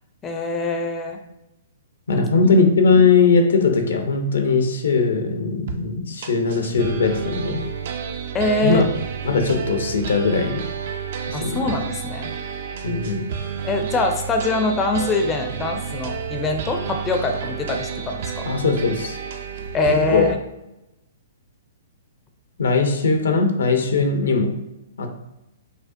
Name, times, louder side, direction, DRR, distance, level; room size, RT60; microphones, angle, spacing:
voice 1, 0.2-1.2 2.1-2.5 8.3-8.8 11.3-12.3 13.6-18.4 19.7-20.4, left 2 dB, 20° left, 4 dB, 0.4 m, -24 dB
voice 2, 2.1-7.6 8.6-8.8 9.2-10.6 11.3-11.7 12.8-13.2 18.4-19.2 20.0-20.3 22.6-24.6 25.0-25.1, left 4 dB, 80° left, 5 dB, 0.6 m, -19 dB
sound 1, 5.7-5.8 6.2-20.3, right 6 dB, 60° right, 0.4 m, -30 dB
5.1 x 2.1 x 2.5 m, 0.91 s
hypercardioid pair, 130°, 0 cm